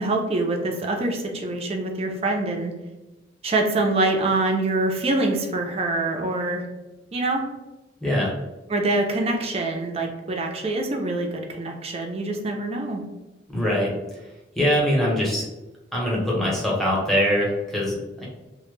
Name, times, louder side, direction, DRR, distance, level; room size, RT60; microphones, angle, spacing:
voice 1, 0.0-2.7 3.4-6.6 7.1-7.5 8.7-13.0, right 2 dB, 35° right, 2 dB, 0.4 m, -25 dB
voice 2, 8.0-8.3 13.5-13.9 14.6-15.5 15.9-18.2, equal, ahead, -5 dB, 0.7 m, -22 dB
2.1 x 2.1 x 3.0 m, 1.1 s
head